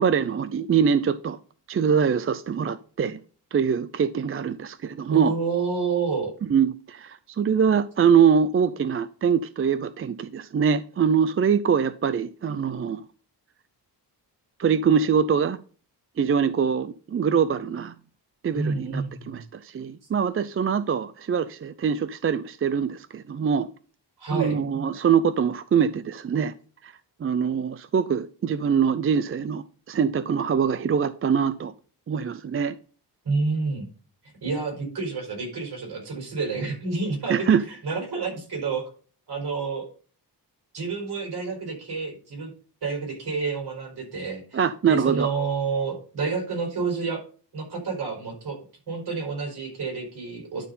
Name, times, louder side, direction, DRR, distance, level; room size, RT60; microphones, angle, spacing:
voice 1, 0.0-1.4 1.7-3.2 3.5-5.3 6.5-13.0 14.6-15.6 16.2-17.9 18.4-23.7 24.3-26.5 26.8-26.9 27.2-31.7 32.1-32.8 37.3-37.6 44.5-45.3, right 7 dB, 35° right, 0.4 m, -23 dB
voice 2, 5.1-6.3 18.5-19.4 24.2-24.6 33.2-33.9 34.4-38.9 39.3-39.9 40.7-42.5 42.8-47.2 47.5-48.6 48.9-50.6, right 4 dB, 65° right, 4.9 m, -29 dB
11.5 x 4.2 x 5.4 m
wide cardioid pair, 115°, 42 cm